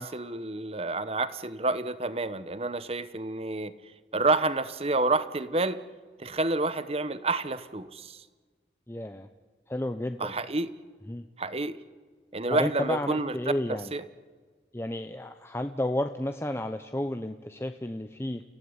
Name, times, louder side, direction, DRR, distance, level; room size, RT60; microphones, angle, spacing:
voice 1, 0.0-3.7 4.1-5.8 6.2-8.2 10.2-10.7 11.4-11.8 12.3-13.3 13.7-14.0, right 2 dB, 35° right, 14 dB, 1.1 m, -29 dB
voice 2, 8.9-9.3 9.7-10.3 11.1-11.2 12.5-13.9 14.7-18.4, left 1 dB, 15° left, 7 dB, 0.8 m, -32 dB
30.0 x 16.0 x 9.8 m, 1.5 s
head